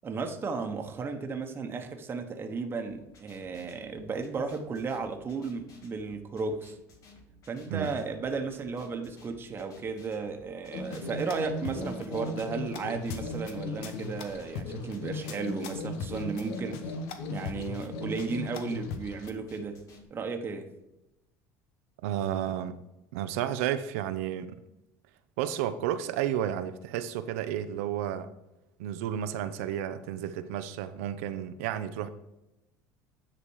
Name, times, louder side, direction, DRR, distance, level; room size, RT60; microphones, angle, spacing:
voice 1, 0.0-6.8 7.5-16.9 17.3-19.8 20.1-20.7, right 4 dB, 30° right, 5 dB, 1.1 m, -34 dB
sound 1, 2.9-20.0, left 2 dB, 50° left, 1.8 m, -56 dB
sound 2, 10.7-19.3, left 3 dB, 80° left, 1.0 m, -37 dB
voice 2, 22.0-22.8 23.1-24.6 25.4-28.3 28.8-32.1, right 10 dB, 90° right, 11 dB, 0.6 m, -32 dB
10.0 x 4.2 x 4.8 m, 0.93 s
supercardioid pair, 105°, 7 cm